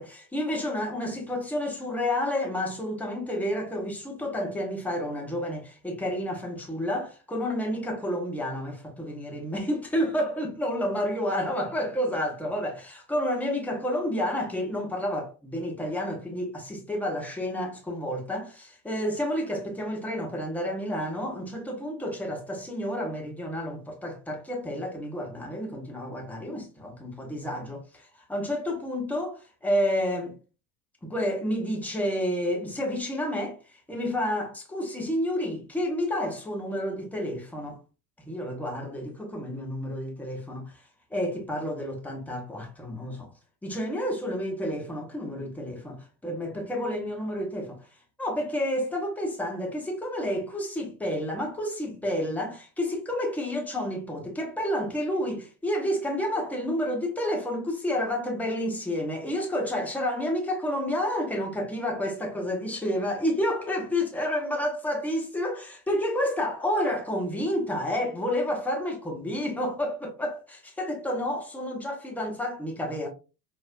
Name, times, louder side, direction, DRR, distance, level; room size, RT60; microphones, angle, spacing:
voice 1, 0.0-30.4 31.0-37.8 38.2-40.8 41.1-43.3 43.6-47.8 48.2-73.1, left 1 dB, 5° left, 0.5 m, -30 dB
4.5 x 2.1 x 2.2 m
figure-of-eight pair, 80°, 50 cm